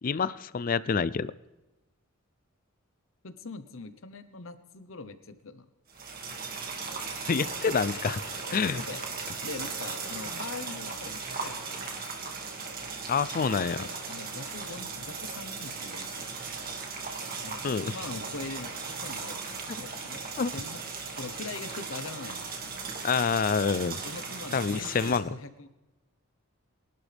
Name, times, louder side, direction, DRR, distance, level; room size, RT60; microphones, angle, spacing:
voice 1, 0.0-1.3 7.3-8.2 8.5-8.8 13.1-13.9 17.6-17.9 20.4-20.5 23.0-24.0 24.5-25.3, left 5 dB, 40° left, 17 dB, 0.4 m, -27 dB
voice 2, 3.2-5.7 8.5-9.2 9.4-11.9 13.8-16.3 17.4-19.4 19.8-20.2 20.5-20.8 21.2-22.8 23.9-25.7, left 3 dB, 65° left, 10 dB, 1.0 m, -42 dB
sound 1, 5.9-25.2, right 4 dB, 40° right, 2.2 m, -37 dB
22.5 x 12.0 x 3.5 m, 1.0 s
head